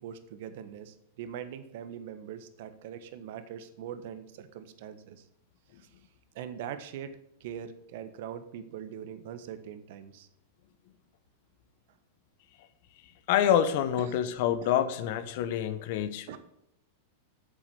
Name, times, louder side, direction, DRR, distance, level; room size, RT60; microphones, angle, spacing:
voice 1, 0.0-5.2 5.8-5.9 6.3-10.3 16.3-16.4, right 9 dB, 65° right, 11 dB, 1.3 m, -42 dB
voice 2, 13.3-16.4, left 10 dB, 60° left, 12 dB, 1.0 m, -27 dB
9.0 x 7.4 x 7.7 m, 0.79 s
hypercardioid pair, 110°, 0 cm